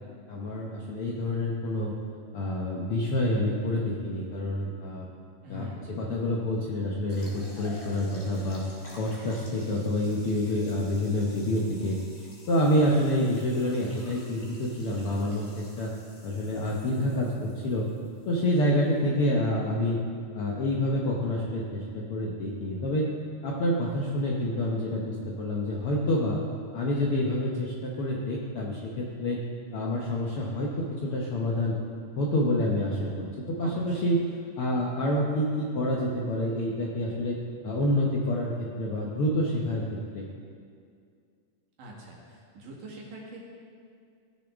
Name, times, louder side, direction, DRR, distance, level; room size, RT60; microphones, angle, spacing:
voice 1, 0.3-1.9 2.3-5.1 5.5-5.7 6.0-8.6 9.0-15.9 16.2-17.9 18.3-20.0 20.3-23.1 23.4-26.4 26.7-29.4 29.7-31.8 32.2-34.2 34.6-37.4 37.6-39.8 40.1-40.3, left 1 dB, 70° left, -3 dB, 1.3 m, -28 dB
voice 2, 5.4-5.9 33.6-34.0 41.8-43.4, equal, 75° right, -4 dB, 3.4 m, -43 dB
sound 1, 7.1-19.0, left 1 dB, 25° left, 1.9 m, -51 dB
17.0 x 7.0 x 3.5 m, 2.3 s
omnidirectional pair, 3.7 m